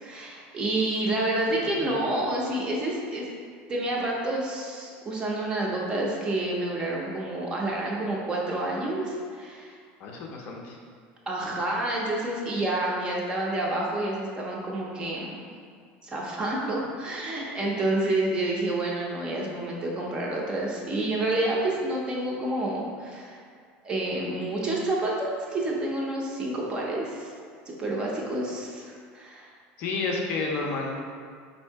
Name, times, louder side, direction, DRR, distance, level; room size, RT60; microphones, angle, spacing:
voice 1, 0.0-3.3 3.7-9.8 11.3-15.4 16.0-23.4 23.8-27.3 27.7-29.5, right 2 dB, 20° right, -3 dB, 0.5 m, -29 dB
voice 2, 10.0-10.8 29.8-30.9, left 3 dB, 40° left, 0 dB, 0.5 m, -30 dB
4.2 x 2.7 x 4.4 m, 2.1 s
cardioid pair, 175°, 5 cm